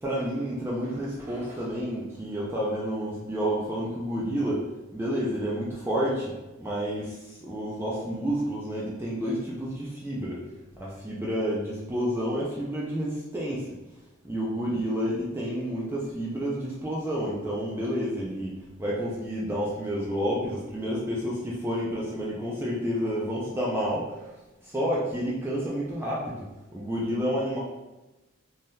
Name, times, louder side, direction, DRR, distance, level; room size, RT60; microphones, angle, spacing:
voice 1, 0.0-4.6 4.9-10.4 10.8-13.7 14.2-24.3 24.6-26.5 26.7-27.6, equal, 10° right, -6 dB, 0.4 m, -30 dB
3.4 x 2.7 x 2.3 m, 1.0 s
head